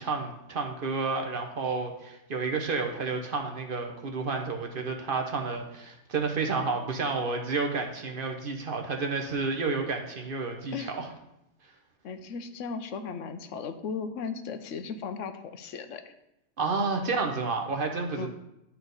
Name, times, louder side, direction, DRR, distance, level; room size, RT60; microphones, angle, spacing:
voice 1, 0.0-11.0 16.6-18.3, right 4 dB, 50° right, 3 dB, 1.0 m, -30 dB
voice 2, 12.0-16.0 18.2-18.3, left 5 dB, 85° left, 8 dB, 1.0 m, -36 dB
10.5 x 4.3 x 4.0 m, 0.86 s
omnidirectional pair, 1.3 m